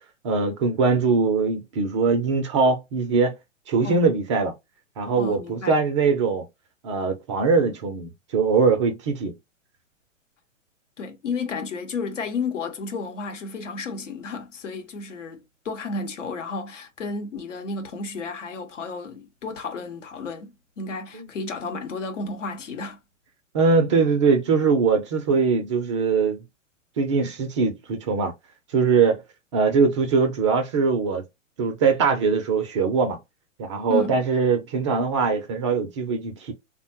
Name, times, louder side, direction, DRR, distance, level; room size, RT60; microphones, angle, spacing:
voice 1, 0.2-3.3 3.7-4.5 5.0-6.4 6.8-9.3 23.5-26.4 27.0-28.3 28.7-29.2 29.5-31.2 31.6-33.2 33.6-36.5, right 4 dB, 25° right, 0.4 m, -22 dB
voice 2, 5.2-5.7 11.0-23.0 33.9-34.2, left 4 dB, 65° left, 0.9 m, -32 dB
3.5 x 2.2 x 2.7 m
figure-of-eight pair, 110°, 39 cm